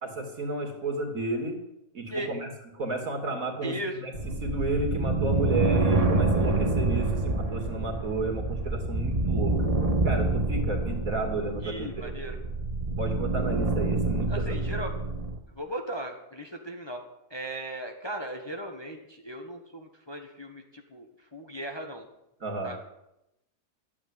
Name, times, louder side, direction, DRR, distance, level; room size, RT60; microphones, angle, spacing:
voice 1, 0.0-1.6 1.9-2.5 2.8-4.1 4.4-9.7 10.0-12.1 13.0-14.5 22.4-22.7, right 2 dB, 55° right, 2 dB, 3.0 m, -32 dB
voice 2, 3.6-4.0 11.6-12.4 14.3-14.9 15.5-17.0 17.3-22.1 22.6-22.8, right 1 dB, 15° left, 3 dB, 1.4 m, -37 dB
sound 1, 4.1-15.4, right 2 dB, 25° right, 1.4 m, -27 dB
13.0 x 8.8 x 9.7 m, 0.87 s
omnidirectional pair, 1.7 m